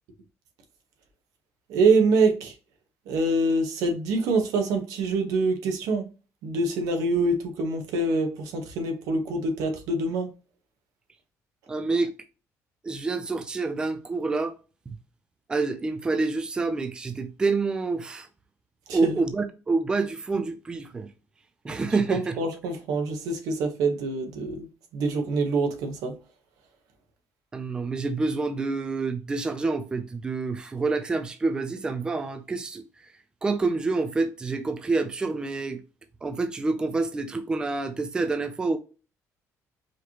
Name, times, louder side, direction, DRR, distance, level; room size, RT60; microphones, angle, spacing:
voice 1, 1.7-2.5 3.1-6.0 6.4-10.3 18.9-19.2 22.1-24.7 24.9-26.1, right 3 dB, 90° right, 1.1 m, -25 dB
voice 2, 11.7-12.1 12.8-14.5 15.5-18.3 18.9-21.1 21.6-22.4 27.5-32.8 33.4-35.8 36.2-38.8, right 3 dB, 15° right, 0.4 m, -27 dB
4.9 x 3.0 x 2.9 m
cardioid pair, 160°, 6 cm